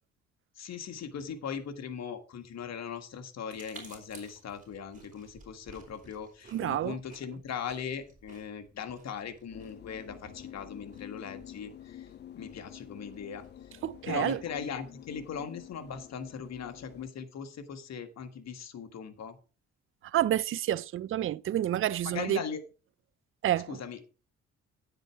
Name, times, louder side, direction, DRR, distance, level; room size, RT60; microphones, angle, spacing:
voice 1, 0.6-13.8 14.1-19.4 22.0-22.6 23.7-24.0, left 7 dB, 60° left, 1.7 m, -39 dB
sound 1, 3.5-14.8, right 3 dB, 25° right, 4.5 m, -56 dB
voice 2, 6.5-7.0 13.8-14.4 20.0-22.4 23.4-23.8, right 12 dB, 45° right, 0.5 m, -29 dB
sound 2, 9.5-17.1, left 11 dB, 35° left, 0.4 m, -48 dB
9.7 x 7.8 x 4.6 m
cardioid pair, 90°, 30 cm